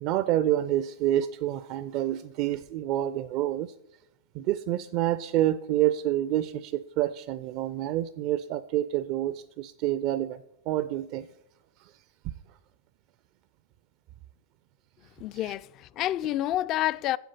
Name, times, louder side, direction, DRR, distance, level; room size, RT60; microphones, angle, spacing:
voice 1, 0.0-3.7 4.3-10.4 10.7-11.2, right 13 dB, 40° right, 0.4 m, -28 dB
voice 2, 15.2-17.2, left 14 dB, 35° left, 0.3 m, -29 dB
10.5 x 7.5 x 6.7 m
figure-of-eight pair, 90°, 0 cm